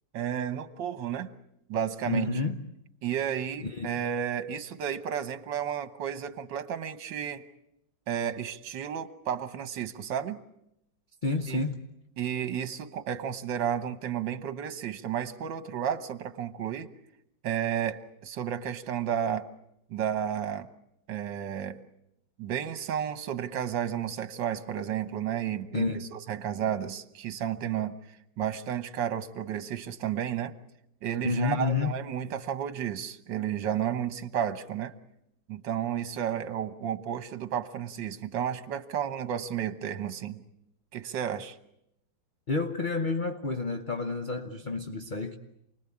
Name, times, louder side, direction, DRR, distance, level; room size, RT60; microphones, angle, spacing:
voice 1, 0.1-1.3 1.7-2.3 3.0-7.4 8.1-10.4 11.5-11.6 12.2-16.9 17.4-19.5 19.9-20.7 21.1-21.8 22.4-28.0 28.4-30.5 31.0-34.9 35.5-40.4 40.9-41.6, right 9 dB, 70° right, 1.8 m, -32 dB
voice 2, 2.1-2.6 3.6-4.0 11.2-11.8 25.7-26.0 31.2-31.9 42.5-45.4, left 4 dB, 35° left, 0.9 m, -29 dB
28.5 x 20.0 x 8.5 m
omnidirectional pair, 2.1 m